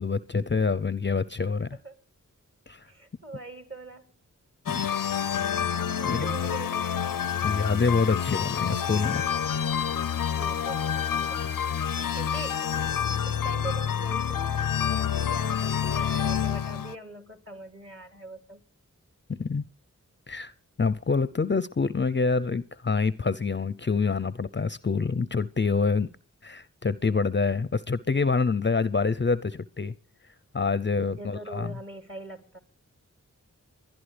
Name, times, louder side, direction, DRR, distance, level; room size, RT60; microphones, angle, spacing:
voice 1, 0.0-1.7 2.7-2.9 4.7-4.9 5.5-6.4 7.4-9.3 19.3-19.6 20.3-20.5 20.8-26.1 26.4-29.9 30.5-31.7, left 4 dB, 35° left, 0.6 m, -26 dB
voice 2, 2.9-4.1 6.0-7.0 8.5-8.6 10.3-11.5 12.2-12.7 13.3-18.6 31.0-32.6, right 2 dB, 40° right, 2.7 m, -42 dB
sound 1, 4.7-17.0, left 8 dB, 85° left, 0.6 m, -28 dB
25.0 x 11.0 x 3.3 m
cardioid pair, 40°, 33 cm